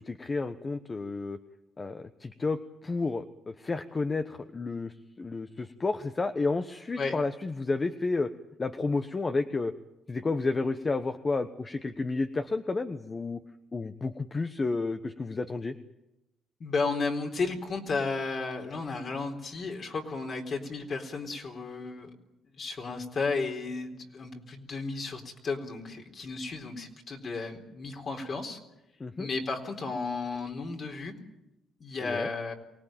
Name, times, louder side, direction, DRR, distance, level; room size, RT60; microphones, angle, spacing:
voice 1, 0.0-1.4 1.8-8.3 8.6-9.7 10.1-13.4 13.7-15.7 29.0-29.3 32.0-32.3, left 3 dB, 30° left, 8 dB, 1.1 m, -31 dB
voice 2, 16.6-22.2 22.5-28.6 29.2-31.2 31.8-32.5, left 4 dB, 50° left, 2 dB, 3.9 m, -33 dB
24.0 x 18.5 x 9.0 m, 0.96 s
cardioid pair, 90°, 0 cm